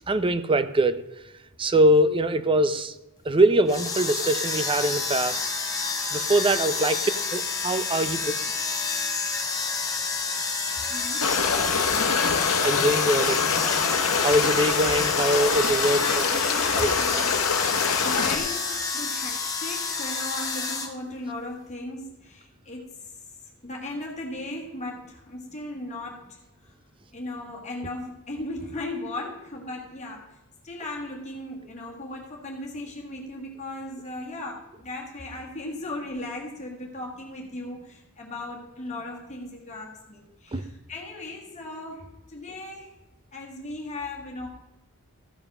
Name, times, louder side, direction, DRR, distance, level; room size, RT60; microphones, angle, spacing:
voice 1, 0.1-1.0 1.6-2.9 3.3-5.4 6.1-7.0 7.3-8.2 12.6-13.4 14.2-16.2 16.7-17.2 40.5-40.7, right 1 dB, 25° right, 0.5 m, -23 dB
sound 1, 3.6-20.9, left 4 dB, 15° left, 1.7 m, -29 dB
voice 2, 7.9-8.3 10.7-11.4 16.0-23.1 23.6-26.4 27.1-30.4 30.6-43.0 43.3-44.5, left 2 dB, 30° left, 1.9 m, -37 dB
sound 2, 11.2-18.4, left 6 dB, 75° left, 1.1 m, -25 dB
14.0 x 5.6 x 6.1 m
head